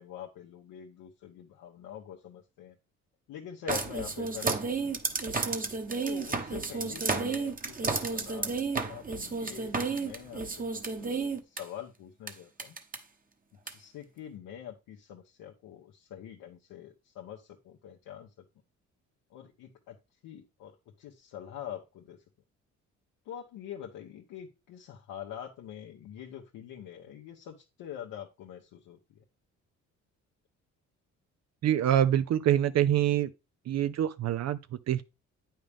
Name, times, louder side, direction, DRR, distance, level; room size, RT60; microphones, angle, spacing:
voice 1, 0.0-2.8 3.3-5.0 6.0-10.6 10.9-12.8 13.6-18.3 19.3-20.0 20.2-22.2 23.2-29.2, left 10 dB, 85° left, 1.2 m, -45 dB
sound 1, 3.7-11.6 12.3-12.4 12.6-13.0 13.7-13.8, right 4 dB, 25° right, 1.2 m, -32 dB
voice 2, 31.6-33.3 33.7-35.0, right 11 dB, 55° right, 0.6 m, -25 dB
8.6 x 5.7 x 3.5 m
cardioid pair, 90°, 31 cm